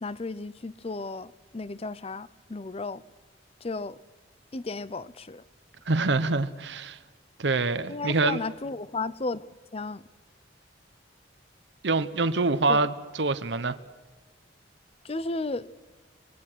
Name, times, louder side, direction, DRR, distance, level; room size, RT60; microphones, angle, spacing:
voice 1, 0.0-3.0 3.6-4.0 4.5-5.4 7.9-9.5 9.7-10.0 12.7-12.8 15.0-15.7, left 3 dB, 30° left, 0.6 m, -34 dB
voice 2, 5.9-7.0 7.4-8.4 11.8-13.8, right 3 dB, 65° right, 0.9 m, -25 dB
25.0 x 21.0 x 6.3 m
head